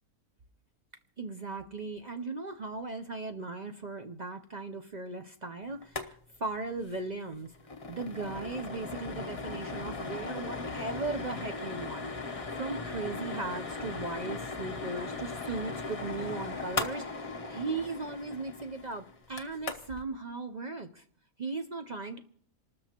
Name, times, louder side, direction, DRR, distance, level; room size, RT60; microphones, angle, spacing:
voice 1, 1.2-7.5 7.9-21.0 21.4-22.2, right 3 dB, 45° right, 6 dB, 0.6 m, -38 dB
sound 1, 5.8-6.1 6.4-6.5 6.8-7.0 7.3-20.0, left 3 dB, 30° left, 0.8 m, -38 dB
27.5 x 13.0 x 2.9 m, 0.63 s
omnidirectional pair, 1.5 m